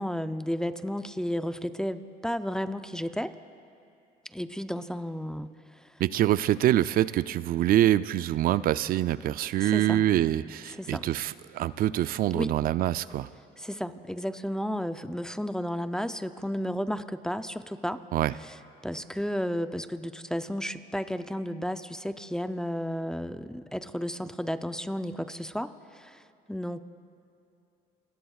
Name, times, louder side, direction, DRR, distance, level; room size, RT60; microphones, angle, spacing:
voice 1, 0.0-3.3 4.3-5.9 9.6-10.0 10.8-11.1 12.3-12.5 13.6-18.0 18.4-18.5 18.8-26.2 26.5-26.8, equal, 5° left, 10 dB, 0.5 m, -33 dB
voice 2, 6.0-13.3 18.1-18.3, right 13 dB, 60° right, 15 dB, 0.4 m, -25 dB
27.5 x 21.0 x 2.4 m, 2.6 s
cardioid pair, 110°, 17 cm